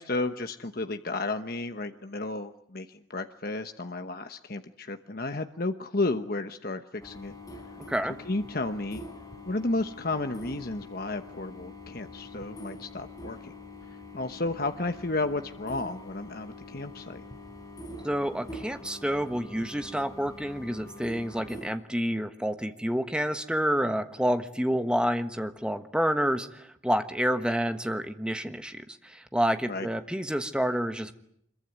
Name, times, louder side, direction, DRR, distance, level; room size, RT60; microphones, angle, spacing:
voice 1, 0.0-7.3 8.2-9.0 9.4-13.5 14.1-17.2 29.7-29.9, left 2 dB, 45° left, 8 dB, 1.0 m, -32 dB
sound 1, 7.0-21.7, left 2 dB, 15° left, 4.4 m, -45 dB
voice 2, 18.0-31.1, equal, 5° right, 8 dB, 1.3 m, -29 dB
25.5 x 23.0 x 9.4 m, 0.71 s
head